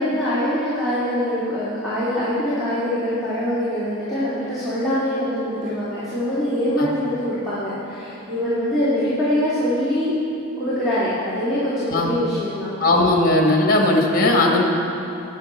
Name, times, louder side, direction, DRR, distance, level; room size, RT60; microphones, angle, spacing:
voice 1, 0.0-10.1 10.6-12.7, equal, ahead, -13 dB, 2.5 m, -23 dB
voice 2, 12.8-14.6, left 2 dB, 40° left, 0 dB, 1.5 m, -17 dB
20.0 x 6.8 x 4.4 m, 2.8 s
head